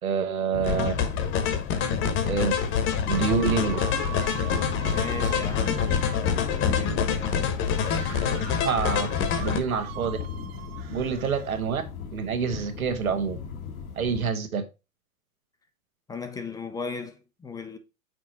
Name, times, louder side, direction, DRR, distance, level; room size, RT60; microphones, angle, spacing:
voice 1, 0.0-0.9 2.2-2.5 3.1-3.8 8.6-9.1 9.4-10.2 10.9-11.8 12.1-13.4 14.0-14.6, right 6 dB, 85° right, 1.5 m, -27 dB
sound 1, 0.5-14.3, left 6 dB, 85° left, 1.7 m, -34 dB
sound 2, 0.6-9.6, left 7 dB, 30° left, 1.1 m, -26 dB
sound 3, 2.6-6.3 7.8-11.7, right 13 dB, 45° right, 0.9 m, -42 dB
voice 2, 4.9-7.5 7.8-8.2 16.1-17.8, left 4 dB, 10° left, 0.5 m, -38 dB
6.0 x 4.6 x 4.1 m
hypercardioid pair, 120°, 41 cm